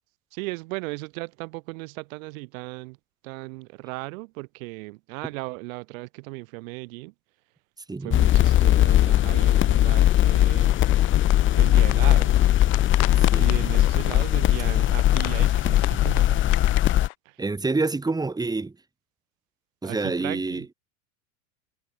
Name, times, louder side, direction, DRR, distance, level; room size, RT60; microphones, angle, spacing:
voice 1, 0.3-3.0 3.2-7.1 8.0-10.8 11.5-12.5 13.4-16.4 17.2-17.4 19.8-20.7, right 26 dB, 65° right, 6.3 m, -36 dB
voice 2, 7.9-8.2 13.2-13.8 17.0-17.1 17.4-18.7 19.8-20.6, right 3 dB, 10° right, 4.3 m, -28 dB
sound 1, 8.1-17.1, left 13 dB, 25° left, 1.0 m, -19 dB
sound 2, 10.6-17.1, left 20 dB, 70° left, 5.5 m, -37 dB
supercardioid pair, 140°, 44 cm